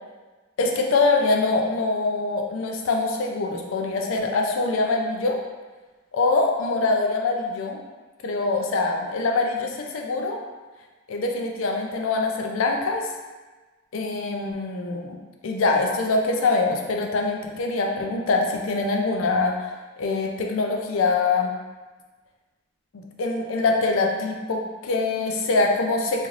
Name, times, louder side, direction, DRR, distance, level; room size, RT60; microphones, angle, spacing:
voice 1, 0.6-5.4 6.1-7.8 8.2-10.4 11.1-13.1 13.9-15.2 15.4-19.7 20.0-21.5 23.2-26.3, left 3 dB, 75° left, 2 dB, 0.4 m, -24 dB
3.1 x 2.6 x 2.4 m, 1.3 s
head